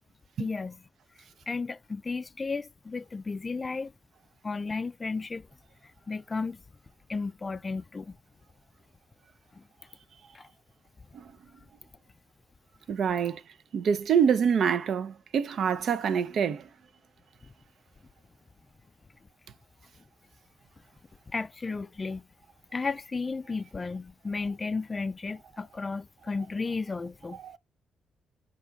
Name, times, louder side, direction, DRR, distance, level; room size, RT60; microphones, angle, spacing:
voice 1, 0.4-0.8 1.5-3.9 4.4-5.5 6.1-6.6 7.1-8.2 9.5-9.6 10.3-10.5 21.3-22.2 22.7-27.4, left 4 dB, 25° left, 0.3 m, -33 dB
voice 2, 12.9-13.4 13.7-16.7 27.4-27.6, right 7 dB, 60° right, 0.5 m, -26 dB
5.0 x 2.9 x 3.4 m
cardioid pair, 90°, 0 cm